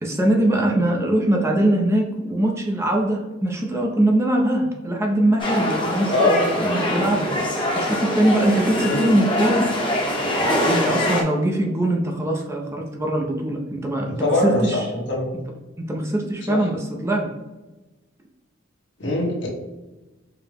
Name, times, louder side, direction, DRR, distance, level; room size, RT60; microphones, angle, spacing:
voice 1, 0.0-7.3 7.8-9.7 10.4-14.9 15.8-17.3, right 1 dB, 15° right, 0 dB, 0.4 m, -22 dB
sound 1, 5.4-11.2, left 1 dB, 25° left, 0.7 m, -23 dB
voice 2, 6.1-6.4 8.8-9.0 14.0-15.3 16.5-16.6 19.0-19.5, left 2 dB, 65° left, -2 dB, 1.1 m, -22 dB
4.6 x 2.0 x 3.4 m, 1.1 s
head